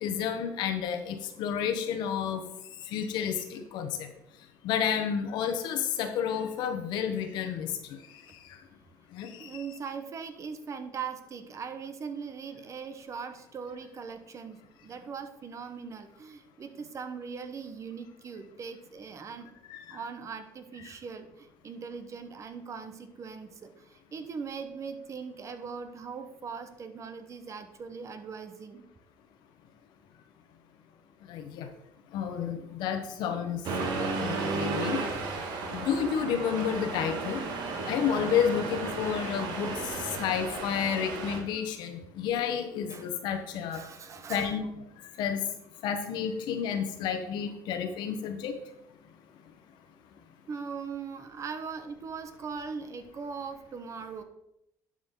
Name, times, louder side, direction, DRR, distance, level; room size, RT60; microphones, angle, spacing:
voice 1, 0.0-2.4 2.9-4.1 4.6-7.7 9.1-9.5 19.7-20.0 31.3-31.7 32.1-33.6 34.2-35.0 35.7-37.4 37.9-39.7 40.2-43.8 44.3-44.7 45.2-45.4 45.8-48.5, left 8 dB, 70° left, 7 dB, 1.2 m, -30 dB
voice 2, 9.4-19.5 19.9-28.9 42.9-43.1 43.7-44.6 50.5-54.2, right 5 dB, 40° right, 8 dB, 1.0 m, -40 dB
Accelerating revving vroom, 33.6-41.4, right 3 dB, 65° right, 1.7 m, -34 dB
11.0 x 5.0 x 3.8 m, 0.84 s
supercardioid pair, 95°, 8 cm